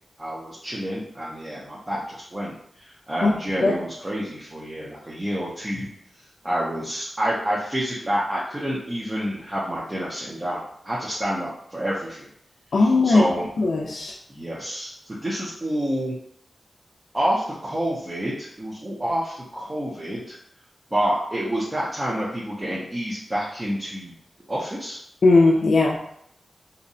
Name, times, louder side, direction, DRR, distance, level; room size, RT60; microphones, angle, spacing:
voice 1, 0.2-5.9 6.2-12.3 12.8-13.5 14.3-16.1 17.1-20.4 20.9-24.1 24.5-25.0, equal, 20° right, -7 dB, 0.5 m, -28 dB
voice 2, 12.7-13.2 13.6-14.1 25.2-26.0, left 3 dB, 65° left, -2 dB, 0.3 m, -18 dB
2.7 x 2.1 x 2.6 m, 0.70 s
wide cardioid pair, 140°, 0 cm